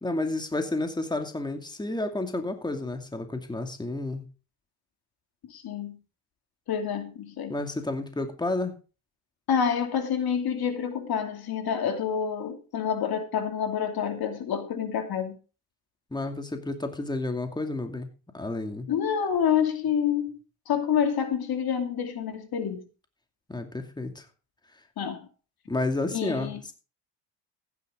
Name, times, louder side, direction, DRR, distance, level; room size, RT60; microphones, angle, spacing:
voice 1, 0.0-4.2 7.5-8.7 16.1-18.1 18.3-18.9 23.5-24.3 25.7-26.7, left 2 dB, 10° left, 2.4 m, -31 dB
voice 2, 5.5-6.0 6.7-7.6 9.5-15.4 18.9-20.3 20.7-22.8 25.0-25.3 26.1-26.6, left 8 dB, 55° left, 2.7 m, -28 dB
14.5 x 10.0 x 3.7 m
supercardioid pair, 80°, 43 cm